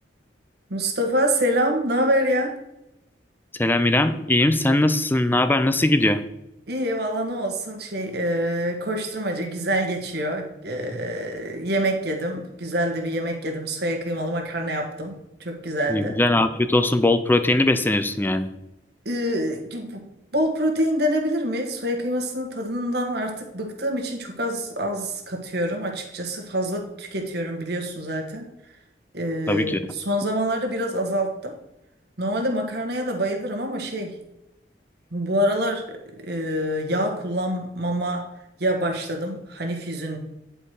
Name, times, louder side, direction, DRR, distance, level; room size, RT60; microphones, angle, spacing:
voice 1, 0.7-2.6 6.7-16.1 19.0-28.5 29.1-31.5 32.2-34.2 35.1-38.3 38.6-40.2, equal, 65° right, 2 dB, 1.5 m, -26 dB
voice 2, 3.6-6.2 15.9-18.5 29.5-29.8, left 1 dB, 10° left, 10 dB, 0.5 m, -20 dB
9.8 x 4.5 x 4.9 m, 0.90 s
head